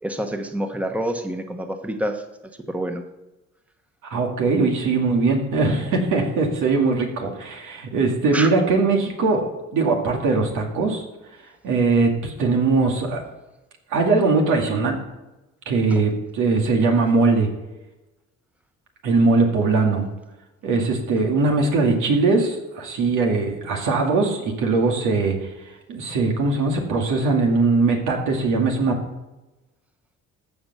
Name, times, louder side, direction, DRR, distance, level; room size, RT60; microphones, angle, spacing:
voice 1, 0.0-2.2 2.7-3.0 8.3-8.5 15.9-16.0, right 1 dB, 5° right, 5 dB, 1.2 m, -27 dB
voice 2, 4.0-9.4 9.7-11.0 11.6-13.2 13.9-15.0 15.7-17.5 19.0-20.0 20.6-25.4 25.9-28.9, right 3 dB, 90° right, 1 dB, 2.3 m, -20 dB
14.5 x 5.3 x 6.8 m, 1.0 s
cardioid pair, 90°, 30 cm